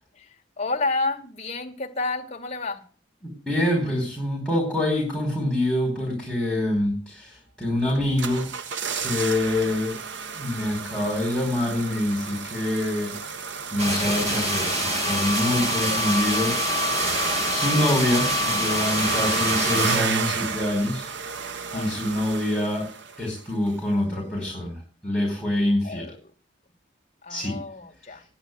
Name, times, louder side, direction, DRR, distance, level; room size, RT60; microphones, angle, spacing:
voice 1, 0.1-2.8 8.0-8.1 15.8-16.5 21.7-22.1 25.8-26.3 27.2-28.2, left 3 dB, 35° left, 2 dB, 2.1 m, -31 dB
voice 2, 3.5-8.5 8.9-10.0 10.3-13.1 13.7-16.6 17.5-21.1 21.7-22.9 23.2-26.1 27.3-27.6, left 1 dB, 5° right, -3 dB, 4.5 m, -25 dB
sound 1, 7.9-23.4 23.7-23.8, right 5 dB, 70° right, 0.9 m, -32 dB
sound 2, 13.8-20.0, equal, 35° right, 4.7 m, -25 dB
10.5 x 8.8 x 9.4 m, 0.42 s
head